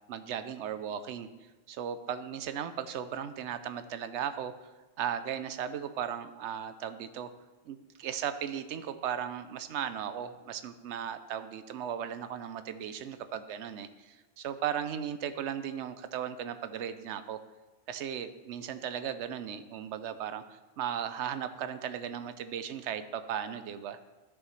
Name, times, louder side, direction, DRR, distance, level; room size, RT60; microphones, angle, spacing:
voice 1, 0.1-4.5 5.0-7.3 7.6-17.4 17.9-24.0, right 9 dB, 75° right, 11 dB, 0.9 m, -36 dB
13.0 x 5.4 x 3.1 m, 1.1 s
omnidirectional pair, 1.2 m